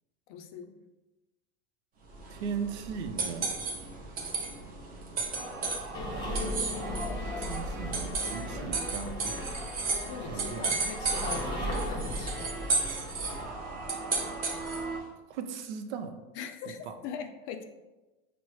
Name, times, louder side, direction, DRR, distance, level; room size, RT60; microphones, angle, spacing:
voice 1, 0.3-0.8 10.1-12.8 16.3-17.6, left 7 dB, 45° left, 6 dB, 0.4 m, -41 dB
sound 1, 2.1-15.0, right 3 dB, 25° right, 0.7 m, -35 dB
voice 2, 2.3-3.6 7.5-9.3 10.2-10.7 15.3-16.2, right 6 dB, 85° right, 7 dB, 0.6 m, -37 dB
sound 2, 5.3-15.0, right 3 dB, 50° right, 1.1 m, -41 dB
sound 3, 5.9-13.5, left 1 dB, 15° left, 0.7 m, -37 dB
6.0 x 2.0 x 3.1 m, 1.1 s
supercardioid pair, 140°, 33 cm